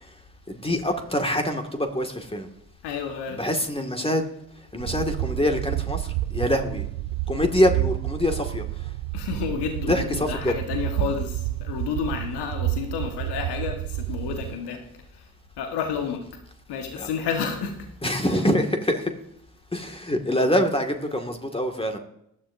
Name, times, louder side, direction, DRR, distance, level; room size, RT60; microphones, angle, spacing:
voice 1, 0.5-2.5 3.3-4.3 4.7-6.8 7.3-8.6 9.9-10.5 17.0-17.1 18.0-19.1 19.7-22.0, left 1 dB, 10° left, 4 dB, 2.0 m, -25 dB
voice 2, 2.8-3.4 9.1-14.9 15.1-15.2 15.6-16.3 16.7-17.9 18.2-18.4, left 7 dB, 60° left, 5 dB, 1.6 m, -31 dB
sound 1, 4.8-14.6, right 16 dB, 60° right, 0.5 m, -30 dB
18.5 x 13.0 x 2.7 m, 0.77 s
figure-of-eight pair, 45°, 45 cm